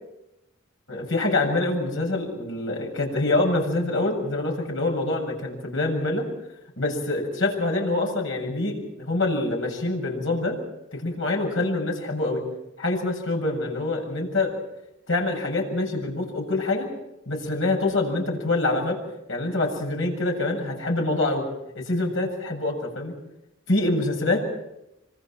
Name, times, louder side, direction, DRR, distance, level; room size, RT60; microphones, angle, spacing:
voice 1, 0.9-6.3 6.8-10.6 10.9-12.5 12.8-14.6 15.1-16.9 17.3-19.0 19.3-21.4 21.7-23.2 23.7-24.4, left 2 dB, 80° left, 2 dB, 7.6 m, -25 dB
26.0 x 26.0 x 4.6 m, 0.88 s
head